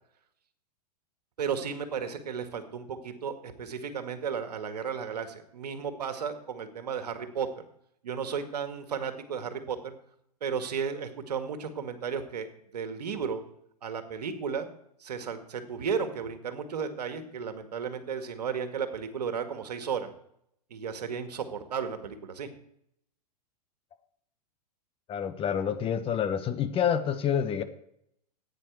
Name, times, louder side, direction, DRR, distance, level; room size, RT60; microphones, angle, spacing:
voice 1, 1.4-7.5 8.0-9.9 10.4-13.4 13.8-14.7 15.0-20.1 20.7-22.5, right 6 dB, 75° right, 8 dB, 1.9 m, -34 dB
voice 2, 25.1-27.6, left 8 dB, 25° left, 10 dB, 1.1 m, -28 dB
15.0 x 9.4 x 4.7 m, 0.73 s
hypercardioid pair, 105°, 21 cm